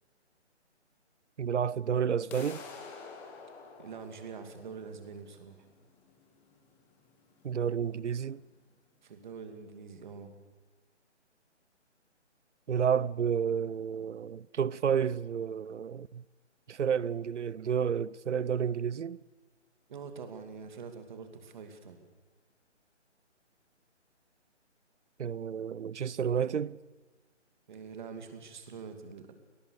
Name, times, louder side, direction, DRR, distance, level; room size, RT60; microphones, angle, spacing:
voice 1, 1.4-2.6 7.4-8.4 12.7-16.2 16.7-19.2 25.2-26.8, right 7 dB, 75° right, 0.7 m, -30 dB
sound 1, 2.3-8.3, left 5 dB, 5° left, 0.9 m, -50 dB
voice 2, 3.8-5.7 9.0-10.3 19.9-22.0 27.7-29.3, right 5 dB, 40° right, 2.7 m, -45 dB
28.0 x 18.5 x 6.8 m
hypercardioid pair, 160°, 36 cm